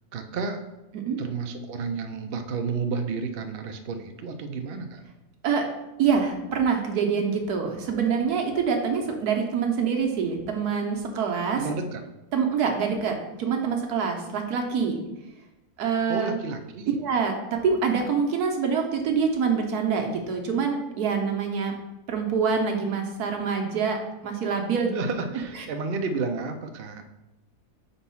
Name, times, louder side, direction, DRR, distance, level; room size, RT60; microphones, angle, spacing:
voice 1, 0.1-0.6 1.2-5.0 11.6-12.0 16.1-17.0 24.9-27.0, right 4 dB, 60° right, 6 dB, 0.6 m, -31 dB
voice 2, 6.0-11.6 12.3-15.0 15.8-16.4 17.0-21.8 22.1-24.9, right 6 dB, 80° right, 3 dB, 1.4 m, -25 dB
4.5 x 4.1 x 5.5 m, 0.96 s
omnidirectional pair, 1.6 m